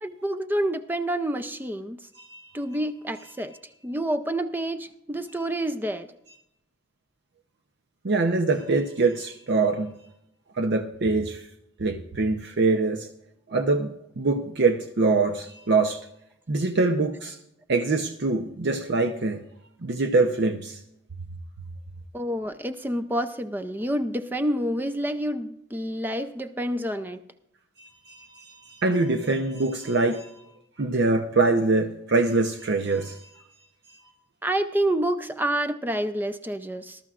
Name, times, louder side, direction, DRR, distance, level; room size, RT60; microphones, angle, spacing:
voice 1, 0.0-2.0 2.5-3.5 3.8-6.1 22.1-27.2 34.4-37.0, right 1 dB, 10° right, 10 dB, 0.4 m, -28 dB
voice 2, 2.2-2.5 8.0-9.9 10.5-11.5 11.8-13.1 13.5-16.0 16.5-17.4 17.7-19.4 19.8-20.8 27.8-30.3 30.8-33.4, right 3 dB, 60° right, 5 dB, 0.7 m, -24 dB
19.5 x 12.5 x 2.4 m, 0.79 s
head